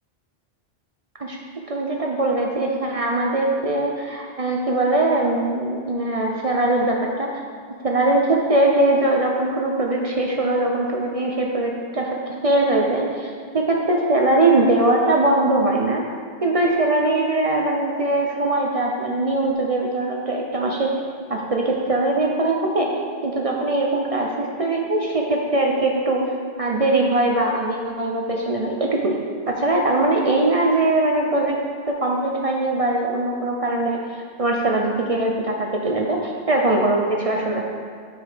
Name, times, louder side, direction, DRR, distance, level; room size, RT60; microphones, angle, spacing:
voice 1, 1.7-7.4 7.8-16.0 16.4-21.0 21.3-22.9 23.2-26.2 26.6-29.2 29.5-37.6, right 2 dB, 40° right, 0 dB, 0.6 m, -21 dB
6.3 x 4.9 x 4.9 m, 2.1 s
omnidirectional pair, 1.1 m